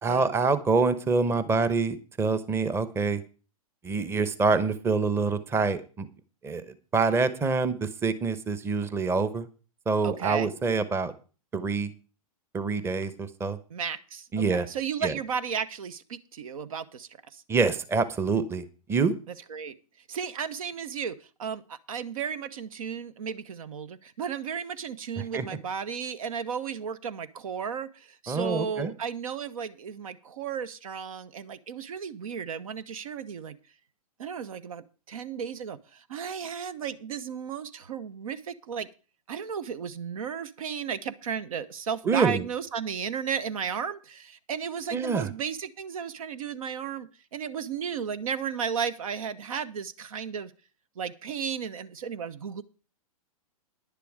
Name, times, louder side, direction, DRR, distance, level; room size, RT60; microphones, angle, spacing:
voice 1, 0.0-3.2 3.8-6.1 6.4-9.5 9.9-11.1 11.5-11.9 12.5-13.6 14.3-14.7 15.0-15.1 17.5-19.1 25.2-25.4 28.3-28.9 42.0-42.4 44.9-45.3, right 4 dB, 15° right, 13 dB, 0.9 m, -26 dB
voice 2, 10.0-10.5 13.7-17.4 19.5-19.7 20.1-33.6 34.2-38.9 39.3-50.5 51.0-52.6, right 7 dB, 65° right, 15 dB, 1.0 m, -34 dB
10.5 x 10.0 x 4.9 m, 0.35 s
hypercardioid pair, 115°, 19 cm